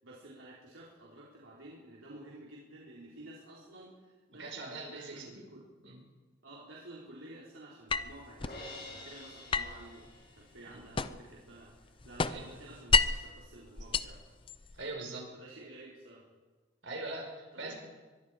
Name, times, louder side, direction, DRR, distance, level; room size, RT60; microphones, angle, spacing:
voice 1, 0.0-5.6 6.4-14.2 14.5-14.8 15.3-16.2 17.5-17.7, right 1 dB, 90° right, -5 dB, 4.2 m, -52 dB
voice 2, 4.4-5.4 5.8-6.0 10.7-10.8 12.2-12.5 14.7-15.3 16.8-17.7, right 2 dB, 75° right, 1 dB, 5.0 m, -42 dB
sound 1, 7.9-8.6 9.5-11.4 11.7-13.3 13.8-14.9, left 4 dB, 25° left, 0.6 m, -31 dB
Crash cymbal, 8.4-10.7, left 2 dB, 50° left, 6.8 m, -48 dB
23.0 x 22.5 x 5.0 m, 1.3 s
head